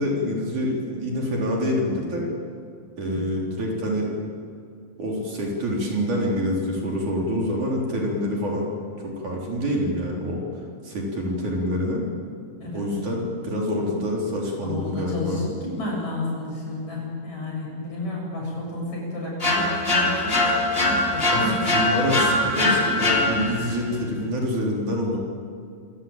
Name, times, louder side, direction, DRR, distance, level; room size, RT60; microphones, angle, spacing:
voice 1, 0.0-2.3 3.0-4.1 5.0-8.7 9.0-10.4 10.8-12.1 12.7-15.5 21.3-21.4 21.7-25.2, equal, 60° right, -2 dB, 5.2 m, -26 dB
voice 2, 14.6-21.6 22.2-22.3 22.9-23.3, left 1 dB, 50° left, -2 dB, 9.0 m, -31 dB
sound 1, 19.4-23.8, left 2 dB, 15° left, 3.0 m, -22 dB
26.5 x 17.0 x 9.1 m, 2.3 s
omnidirectional pair, 4.0 m